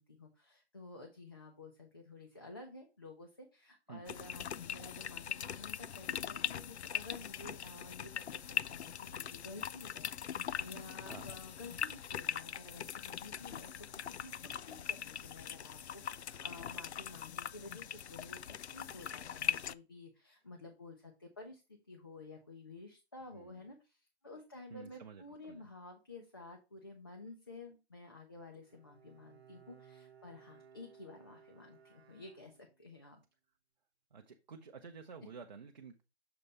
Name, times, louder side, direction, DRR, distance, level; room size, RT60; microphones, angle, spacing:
voice 1, 0.0-33.2, left 3 dB, 20° left, 0.5 m, -52 dB
sound 1, 4.1-19.7, left 8 dB, 80° left, 0.5 m, -41 dB
voice 2, 24.7-25.6 34.1-36.0, right 5 dB, 40° right, 0.7 m, -51 dB
Bowed string instrument, 28.6-33.0, right 7 dB, 65° right, 0.9 m, -61 dB
6.8 x 3.2 x 5.3 m
figure-of-eight pair, 160°, 33 cm